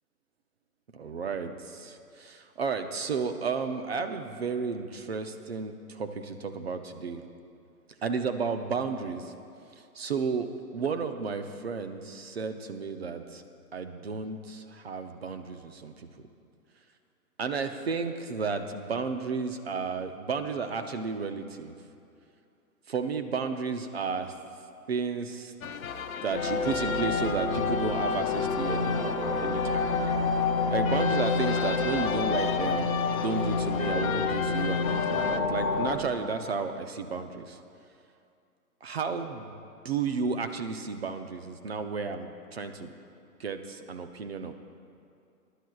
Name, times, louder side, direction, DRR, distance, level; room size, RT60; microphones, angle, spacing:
voice 1, 0.9-7.2 8.0-9.3 9.9-13.4 13.7-16.1 17.4-21.8 22.9-24.3 24.9-25.5 26.2-30.0 30.7-37.6 38.8-39.6 39.8-42.9 43.4-44.5, right 5 dB, 40° right, 8 dB, 0.6 m, -33 dB
sound 1, 25.6-35.4, left 7 dB, 60° left, 0.7 m, -35 dB
sound 2, 26.3-36.0, left 4 dB, 15° left, 0.6 m, -28 dB
21.5 x 11.0 x 2.3 m, 2.5 s
hypercardioid pair, 160°, 47 cm